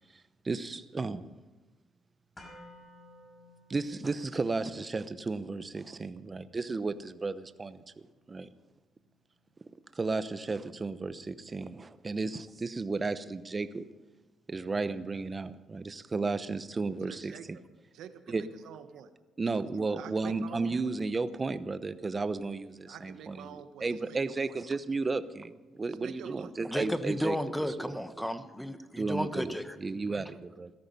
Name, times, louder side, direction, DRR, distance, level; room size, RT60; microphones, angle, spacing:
voice 1, 0.4-1.3 3.7-7.8 8.3-8.5 9.9-13.9 14.5-17.4 18.3-18.4 19.4-27.4 27.8-28.0 29.0-29.5 29.8-30.7, right 3 dB, 30° right, 13 dB, 0.9 m, -33 dB
sound 1, 2.4-10.4 10.7-10.8, left 1 dB, 25° left, 5.5 m, -58 dB
voice 2, 16.9-17.4 17.9-19.1 19.5-19.6 19.9-20.7 22.9-24.6 25.9-26.5, right 9 dB, 85° right, 9 dB, 1.2 m, -47 dB
voice 3, 26.7-29.8, equal, 5° left, 10 dB, 1.2 m, -33 dB
17.0 x 13.5 x 5.5 m, 1.2 s
cardioid pair, 90°, 0 cm